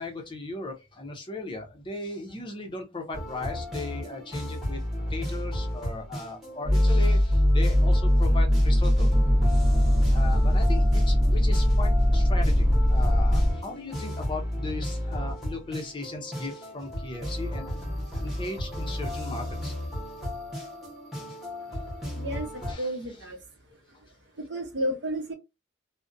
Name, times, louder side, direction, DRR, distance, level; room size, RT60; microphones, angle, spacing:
voice 1, 0.0-4.8 5.1-9.1 10.1-19.7 21.7-21.9 22.6-23.3, left 2 dB, 25° left, 0.5 m, -37 dB
sound 1, 3.1-22.7, left 1 dB, ahead, 0.9 m, -34 dB
sound 2, 6.6-13.5, equal, 25° right, 0.5 m, -21 dB
voice 2, 22.1-23.4 24.4-25.3, equal, 65° right, 0.7 m, -32 dB
2.4 x 2.1 x 2.5 m
head